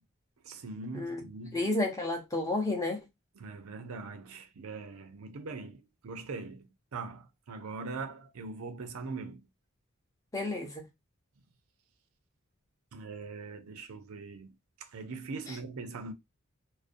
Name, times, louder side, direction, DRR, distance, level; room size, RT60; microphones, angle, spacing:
voice 1, 0.4-1.6 3.3-9.4 12.9-16.1, right 4 dB, 80° right, 0.5 m, -42 dB
voice 2, 0.9-1.2 1.5-3.0 10.3-10.9, left 2 dB, 15° left, 0.6 m, -31 dB
2.5 x 2.0 x 2.5 m
head